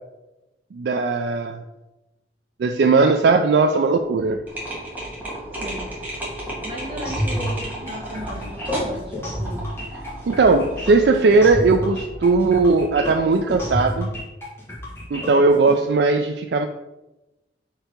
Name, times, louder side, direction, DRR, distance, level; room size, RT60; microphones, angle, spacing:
voice 1, 0.7-1.6 2.6-4.4 10.3-14.1 15.1-16.7, right 3 dB, 65° right, 6 dB, 0.3 m, -18 dB
sound 1, 3.9-14.1, right 1 dB, 85° right, 0.9 m, -41 dB
sound 2, 4.5-11.3, right 1 dB, 10° right, 1.6 m, -33 dB
voice 2, 5.5-5.9 6.4-9.6, equal, 30° right, -5 dB, 1.7 m, -36 dB
sound 3, 7.0-15.7, left 1 dB, 15° left, 1.7 m, -30 dB
4.5 x 4.5 x 5.1 m, 1.0 s
head